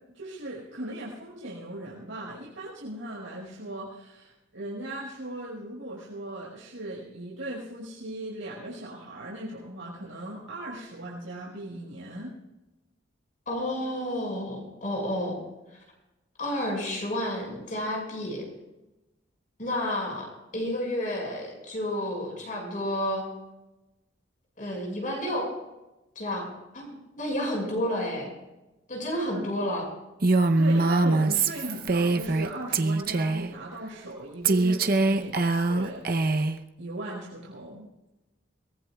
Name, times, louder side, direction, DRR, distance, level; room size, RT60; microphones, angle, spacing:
voice 1, 0.1-12.4 29.3-29.7 30.6-36.5 36.8-37.9, right 1 dB, 80° right, -5 dB, 5.1 m, -38 dB
voice 2, 13.5-15.4 16.4-18.5 19.6-23.2 24.6-25.5 26.2-26.5 26.7-28.3 28.9-29.9, left 1 dB, 40° left, 0 dB, 5.8 m, -30 dB
Female speech woman speaking, 30.2-32.5 32.7-33.5 34.4-36.6, right 3 dB, 50° right, 0.8 m, -23 dB
23.0 x 19.5 x 2.4 m, 0.99 s
head